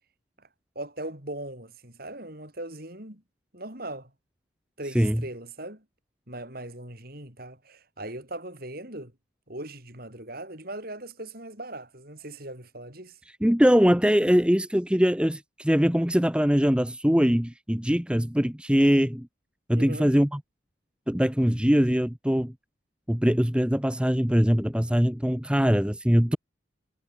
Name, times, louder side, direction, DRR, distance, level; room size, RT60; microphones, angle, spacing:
voice 1, 0.8-3.2 3.5-4.1 4.8-5.8 6.3-9.1 9.5-13.2 19.7-20.1, right 1 dB, 50° right, 7.0 m, -39 dB
voice 2, 13.4-19.3 19.7-20.4 21.1-22.5 23.1-26.4, equal, 5° right, 1.0 m, -22 dB
head